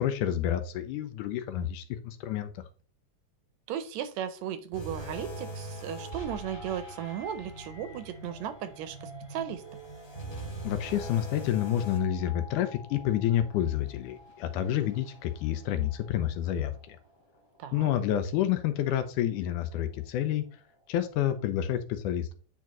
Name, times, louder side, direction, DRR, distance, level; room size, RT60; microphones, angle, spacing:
voice 1, 0.0-2.5 10.6-17.0 17.7-20.5 20.9-22.3, left 11 dB, 85° left, 10 dB, 2.2 m, -29 dB
voice 2, 3.7-9.6 17.6-17.9, right 9 dB, 75° right, 11 dB, 1.8 m, -36 dB
sound 1, 4.7-16.2 16.5-16.8 17.4-17.5, right 1 dB, 15° left, 0.8 m, -43 dB
9.5 x 4.5 x 3.0 m, 0.38 s
omnidirectional pair, 3.6 m